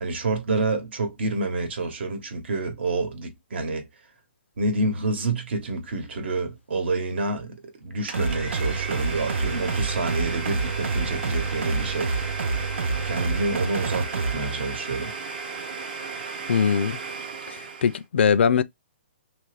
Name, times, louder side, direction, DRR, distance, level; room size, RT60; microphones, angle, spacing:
voice 1, 0.0-3.9 4.6-7.6 7.8-12.1 13.0-15.1, right 3 dB, 65° right, 1.1 m, -28 dB
sound 1, 8.1-17.1, left 6 dB, ahead, 0.4 m, -43 dB
Domestic sounds home sounds, 8.1-18.0, right 6 dB, 45° right, 0.7 m, -36 dB
sound 2, 8.1-14.3, right 4 dB, 85° right, 0.5 m, -28 dB
voice 2, 16.5-17.0 17.5-18.6, left 7 dB, 70° left, 0.4 m, -21 dB
2.9 x 2.4 x 3.2 m
hypercardioid pair, 160°, 6 cm